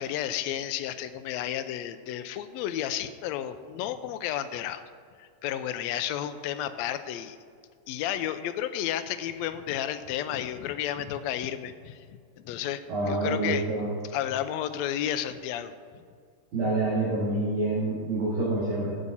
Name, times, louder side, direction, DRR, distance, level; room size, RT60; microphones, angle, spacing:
voice 1, 0.0-4.8 5.2-7.4 7.9-12.0 12.4-12.8 13.1-13.6 14.1-15.7, left 11 dB, 80° left, 10 dB, 1.6 m, -32 dB
voice 2, 12.9-13.9 16.5-18.9, right 2 dB, 40° right, -10 dB, 3.5 m, -27 dB
16.0 x 7.2 x 4.1 m, 2.2 s
omnidirectional pair, 3.6 m